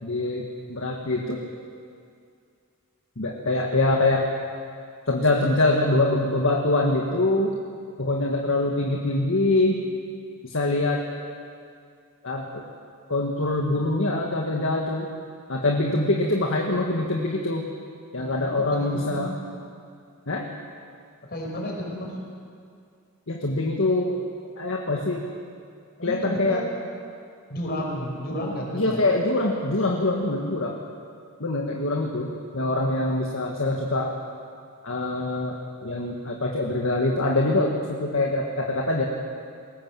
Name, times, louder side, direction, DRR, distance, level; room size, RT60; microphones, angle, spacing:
voice 1, 0.0-1.4 3.2-4.2 5.1-7.6 8.0-9.8 10.4-11.0 12.2-12.6 13.1-15.1 15.5-17.7 18.1-19.3 20.3-20.5 23.3-24.2 24.6-25.3 26.0-26.6 28.7-30.8 31.4-34.1 34.8-35.6 35.8-39.0, left 2 dB, 60° left, 0 dB, 1.8 m, -24 dB
voice 2, 18.2-19.3 21.3-22.2 26.0-26.7 27.5-29.1, equal, 45° left, 0 dB, 5.2 m, -32 dB
21.5 x 18.5 x 7.7 m, 2.3 s
head